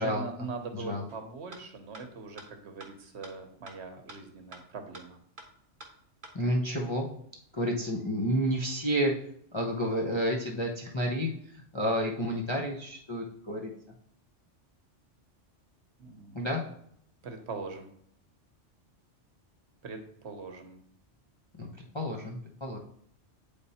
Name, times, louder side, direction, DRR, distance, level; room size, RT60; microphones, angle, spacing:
voice 1, 0.0-5.2 16.0-16.6 17.2-17.9 19.8-20.8, right 4 dB, 65° right, 7 dB, 1.2 m, -41 dB
voice 2, 0.7-1.0 6.3-7.1 7.5-9.1 9.5-13.7 16.3-16.6 21.6-21.7 21.9-22.8, equal, 25° left, -2 dB, 0.8 m, -30 dB
sound 1, 1.1-1.2 1.5-1.6 1.9-2.0 2.4-2.5 2.8-2.9 3.2-3.3 3.7-3.8 4.1-4.2 4.5-4.6 4.9-5.0 5.4-5.5 5.8-5.9 6.2-6.3, right 2 dB, 45° right, 1.2 m, -46 dB
9.1 x 3.5 x 4.2 m, 0.67 s
omnidirectional pair, 1.2 m